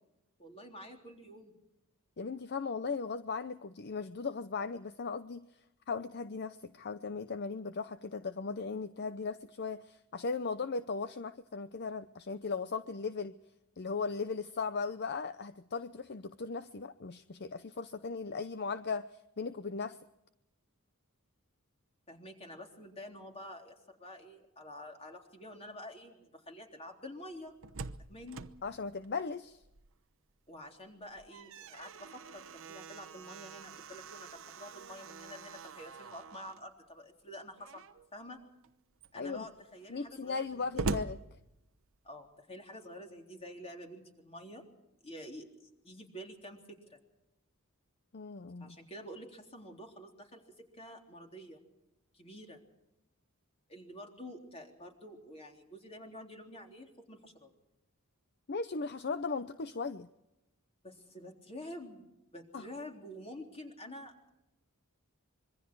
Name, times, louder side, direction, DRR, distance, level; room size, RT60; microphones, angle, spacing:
voice 1, 0.4-1.6 22.1-27.6 28.0-28.5 30.5-37.8 38.1-38.4 39.1-40.9 42.0-44.6 45.0-45.5 45.8-47.0 48.6-51.6 52.1-52.6 53.7-57.5 60.8-64.3, left 1 dB, 30° left, 2 dB, 3.7 m, -48 dB
voice 2, 2.2-5.5 5.9-13.3 13.8-19.1 19.4-20.0 28.6-29.6 39.1-39.5 39.9-41.2 48.1-48.8 58.5-60.1 62.5-62.7, left 4 dB, 50° left, 12 dB, 0.7 m, -37 dB
Slam, 27.3-30.1 30.5-30.6 31.0-36.7 37.6-38.1 38.6-38.7 39.0-42.1, right 3 dB, 65° right, 1.0 m, -44 dB
26.0 x 23.0 x 4.7 m, 0.90 s
head